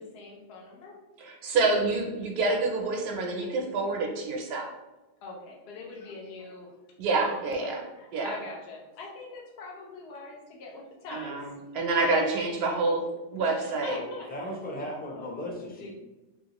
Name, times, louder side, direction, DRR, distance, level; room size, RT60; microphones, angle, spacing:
voice 1, 0.1-1.0 5.2-6.7 7.2-11.5 11.9-12.3 13.4-15.3 15.8-15.9, left 3 dB, 80° left, -1 dB, 0.8 m, -43 dB
voice 2, 1.2-4.7 7.0-7.8 8.1-8.3 11.1-13.0 13.3-14.0, right 3 dB, 85° right, 1 dB, 0.8 m, -27 dB
voice 3, 14.0-15.9, left 1 dB, 15° left, -2 dB, 0.3 m, -37 dB
3.0 x 2.7 x 2.9 m, 1.1 s
omnidirectional pair, 1.0 m